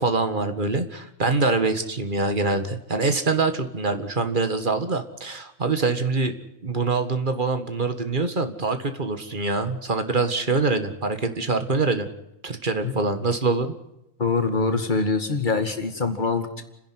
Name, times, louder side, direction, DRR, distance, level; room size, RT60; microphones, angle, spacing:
voice 1, 0.0-6.3 6.6-12.1 12.4-13.7, right 3 dB, 40° right, 9 dB, 1.9 m, -24 dB
voice 2, 14.2-16.6, left 4 dB, 35° left, 7 dB, 2.3 m, -24 dB
30.0 x 10.5 x 9.5 m, 0.87 s
omnidirectional pair, 1.4 m